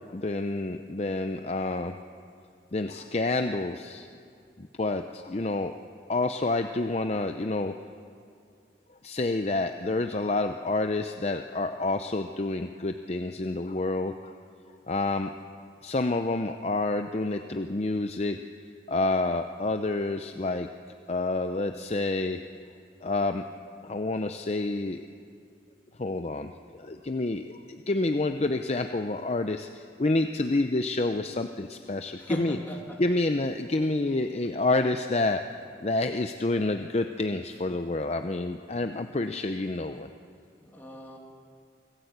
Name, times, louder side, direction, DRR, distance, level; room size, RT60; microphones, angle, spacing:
voice 1, 0.1-2.0 2.7-4.1 4.6-5.7 6.1-7.7 9.0-14.3 14.9-15.3 15.8-18.4 18.9-20.7 21.1-22.4 23.0-23.4 23.8-25.1 26.0-32.6 33.0-35.4 35.8-40.1, left 2 dB, 35° left, 7 dB, 0.6 m, -28 dB
voice 2, 32.2-33.0 40.6-41.2, equal, 10° left, -1 dB, 2.7 m, -38 dB
26.0 x 14.0 x 8.1 m, 2.3 s
head